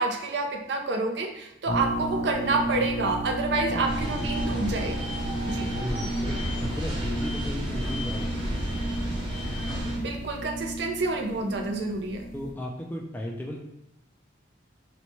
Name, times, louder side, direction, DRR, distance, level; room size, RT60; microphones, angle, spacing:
voice 1, 0.0-5.1 5.5-5.7 10.0-12.3, right 3 dB, 60° right, 3 dB, 0.5 m, -28 dB
sound 1, 1.6-12.5, right 1 dB, 60° left, 0.7 m, -33 dB
sound 2, 3.8-10.0, equal, 25° right, 0.9 m, -31 dB
voice 2, 5.7-9.2 12.3-13.6, equal, 10° left, -1 dB, 0.3 m, -35 dB
3.0 x 2.2 x 4.0 m, 0.84 s
head